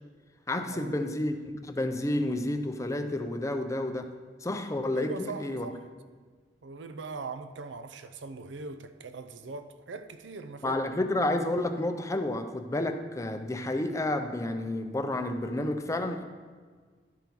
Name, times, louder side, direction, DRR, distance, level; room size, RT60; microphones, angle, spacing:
voice 1, 0.5-4.1 4.4-5.7 10.6-16.2, left 1 dB, 15° left, 0.5 m, -30 dB
voice 2, 4.9-5.8 6.6-10.8, right 4 dB, 80° right, 0.6 m, -40 dB
11.5 x 5.3 x 4.5 m
head